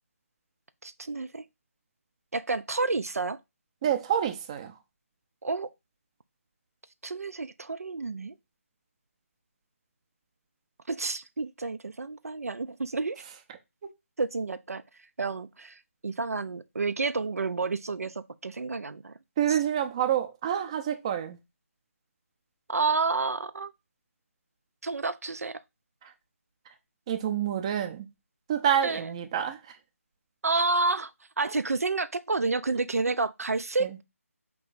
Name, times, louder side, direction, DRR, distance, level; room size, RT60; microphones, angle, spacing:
voice 1, 0.8-1.4 2.3-3.4 5.4-5.7 7.0-8.3 10.9-13.2 14.2-14.8 15.2-19.1 19.5-19.6 22.7-23.7 24.8-25.6 28.8-29.1 30.4-31.1 31.4-34.0, right 3 dB, 80° right, 0.4 m, -30 dB
voice 2, 3.8-4.7 19.4-21.4 27.1-28.1 28.5-29.6 33.8-33.9, right 9 dB, 25° right, 0.5 m, -27 dB
4.6 x 3.1 x 3.8 m
figure-of-eight pair, 155°, 8 cm